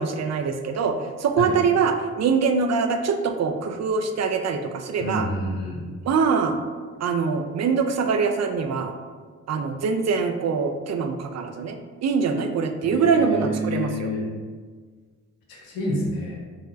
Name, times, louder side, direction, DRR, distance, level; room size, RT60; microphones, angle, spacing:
voice 1, 0.0-5.3 6.0-6.6 7.0-8.9 9.5-14.1, right 5 dB, 50° right, 6 dB, 0.4 m, -23 dB
voice 2, 5.0-5.8 12.8-14.3 15.6-16.4, equal, 90° left, -2 dB, 0.7 m, -28 dB
3.8 x 2.1 x 2.6 m, 1.5 s
supercardioid pair, 45°, 34 cm